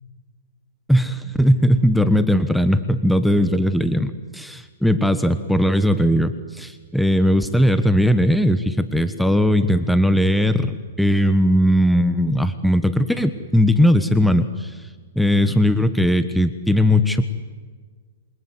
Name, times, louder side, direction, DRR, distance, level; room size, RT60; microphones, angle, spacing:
voice 1, 0.9-14.9 15.1-17.3, equal, ahead, 10 dB, 1.3 m, -18 dB
28.0 x 25.5 x 8.1 m, 1.5 s
hypercardioid pair, 135°, 0 cm